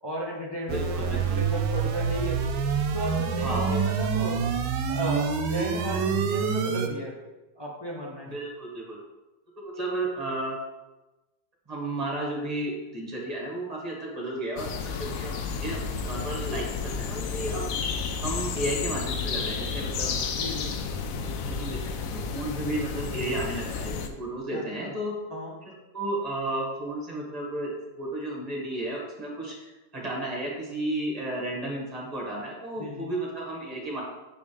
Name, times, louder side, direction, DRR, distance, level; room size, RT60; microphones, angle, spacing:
voice 1, 0.0-2.4 2.9-4.4 4.9-7.1 7.6-8.3 20.3-20.7 24.5-24.9 25.3-25.5 32.8-33.1, equal, 40° left, -3 dB, 0.3 m, -34 dB
voice 2, 0.7-1.4 3.4-3.8 8.3-9.0 9.6-10.6 11.7-15.8 16.0-20.1 20.6-20.7 21.2-22.0 22.3-25.1 25.6-34.0, right 1 dB, 20° right, -3 dB, 1.5 m, -33 dB
sound 1, 0.7-6.9, right 6 dB, 75° right, 1.3 m, -27 dB
sound 2, 14.6-24.1, left 5 dB, 75° left, 0.8 m, -31 dB
6.9 x 5.4 x 3.2 m, 1.1 s
omnidirectional pair, 2.0 m